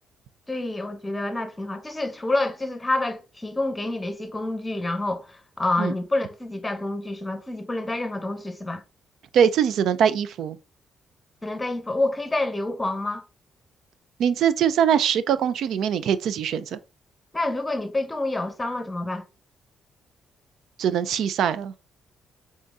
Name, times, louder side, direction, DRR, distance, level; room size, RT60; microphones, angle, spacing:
voice 1, 0.5-8.8 11.4-13.2 17.3-19.2, left 2 dB, 15° left, 0.9 m, -28 dB
voice 2, 9.3-10.6 14.2-16.8 20.8-21.7, right 8 dB, 75° right, 0.4 m, -22 dB
3.9 x 3.8 x 3.5 m
cardioid pair, 90°, 0 cm